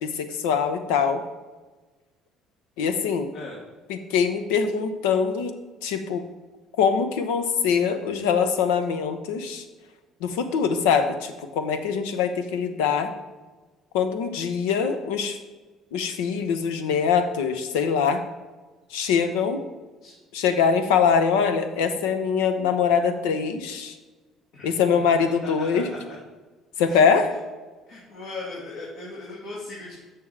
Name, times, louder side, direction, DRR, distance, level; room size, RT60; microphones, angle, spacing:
voice 1, 0.0-1.2 2.8-3.3 3.9-5.6 5.8-6.2 6.8-9.6 10.2-13.1 13.9-15.4 15.9-18.2 18.9-19.7 20.3-23.9 24.6-25.9 26.8-27.3, left 6 dB, 85° left, 8 dB, 0.8 m, -23 dB
voice 2, 25.4-26.1 26.9-27.1 27.9-30.0, left 2 dB, 70° left, -6 dB, 2.2 m, -38 dB
6.9 x 5.8 x 4.9 m, 1.3 s
supercardioid pair, 80°, 0 cm